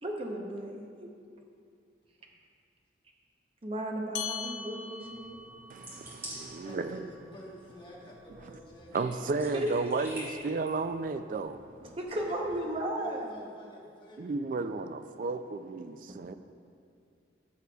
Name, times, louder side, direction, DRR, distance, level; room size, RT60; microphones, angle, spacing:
voice 1, 0.0-1.1 3.6-5.4 9.3-9.7 11.8-13.4 16.1-16.2, right 1 dB, 30° right, 1 dB, 0.8 m, -35 dB
sound 1, 4.1-9.0, left 6 dB, 90° left, 0.4 m, -43 dB
sound 2, 5.0-12.6, equal, 15° right, 1.8 m, -49 dB
voice 2, 5.7-7.1 8.9-11.6 14.2-16.3, right 3 dB, 45° right, 10 dB, 0.3 m, -33 dB
voice 3, 6.6-9.4 12.1-14.4, left 1 dB, 25° left, -4 dB, 1.3 m, -48 dB
13.5 x 6.4 x 2.3 m, 2.3 s
head